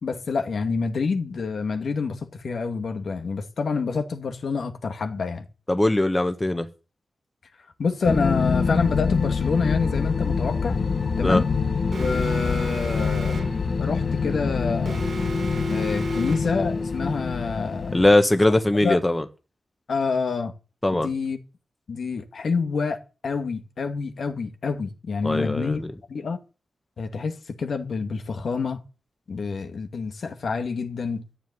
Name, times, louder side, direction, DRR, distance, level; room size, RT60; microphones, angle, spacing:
voice 1, 0.0-5.5 7.8-10.8 11.1-11.5 12.0-13.4 13.8-15.0 15.7-17.9 18.8-19.0 19.9-20.5 20.9-21.4 21.9-25.8 26.1-26.4 27.0-28.8 29.3-31.3, left 4 dB, 70° left, 2.1 m, -27 dB
voice 2, 5.7-6.6 11.2-11.4 17.9-19.2 20.8-21.1 25.2-25.9, left 1 dB, 15° left, 1.6 m, -20 dB
sound 1, 8.0-18.1, left 5 dB, 55° left, 1.7 m, -25 dB
Alarm, 11.9-13.7 14.9-16.6, right 4 dB, 65° right, 1.9 m, -35 dB
13.5 x 7.5 x 9.7 m
wide cardioid pair, 85°, 0 cm